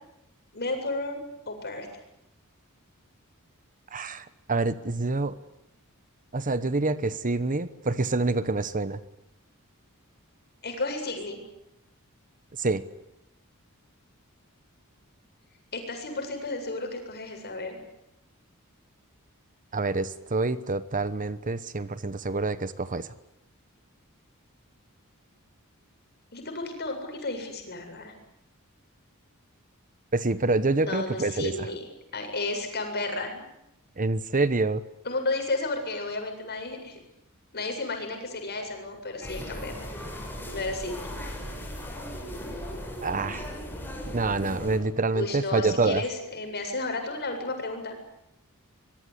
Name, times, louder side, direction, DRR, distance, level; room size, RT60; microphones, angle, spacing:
voice 1, 0.5-1.9 10.6-11.4 15.7-17.8 26.3-28.1 30.8-31.9 32.1-33.5 35.0-37.0 37.5-39.9 40.5-41.1 45.1-48.0, left 2 dB, 50° left, 4 dB, 7.9 m, -32 dB
voice 2, 3.9-5.4 6.3-9.0 12.6-12.9 19.7-23.1 30.1-31.7 34.0-34.8 43.0-43.5 44.1-46.0, right 3 dB, 40° right, 14 dB, 1.1 m, -27 dB
sound 1, 39.2-44.8, equal, 10° left, 6.9 m, -37 dB
25.5 x 22.5 x 9.6 m, 0.84 s
head